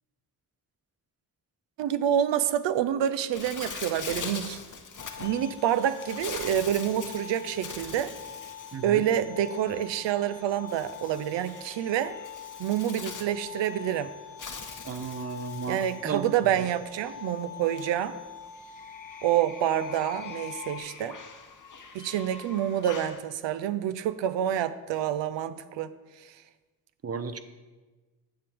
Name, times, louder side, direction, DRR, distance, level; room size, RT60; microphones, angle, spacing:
voice 1, 1.8-4.6 5.2-8.1 8.8-12.2 12.6-14.1 15.7-18.2 19.2-21.2 21.9-25.9 26.2-26.3, right 10 dB, 75° right, 13 dB, 0.6 m, -27 dB
Bird, 3.3-23.2, left 5 dB, 45° left, 1.0 m, -43 dB
sound 1, 5.0-20.8, left 8 dB, 75° left, 2.0 m, -44 dB
voice 2, 14.8-16.2 27.0-27.4, right 5 dB, 35° right, 10 dB, 0.7 m, -34 dB
8.9 x 7.0 x 3.5 m, 1.3 s
supercardioid pair, 40°, 45 cm